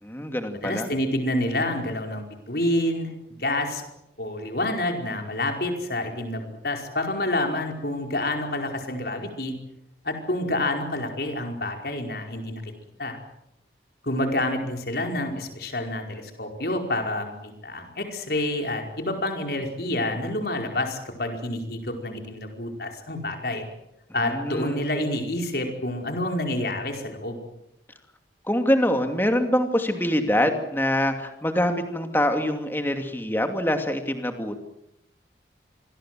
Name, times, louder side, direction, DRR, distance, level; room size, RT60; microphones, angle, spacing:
voice 1, 0.0-0.9 24.2-24.8 28.4-34.6, equal, 10° left, 6 dB, 2.6 m, -24 dB
voice 2, 0.6-3.1 3.4-3.8 4.2-9.5 10.0-12.6 13.0-13.2 14.0-23.6 24.1-27.4, left 1 dB, 60° left, 3 dB, 5.0 m, -28 dB
27.0 x 21.5 x 7.7 m, 0.82 s
head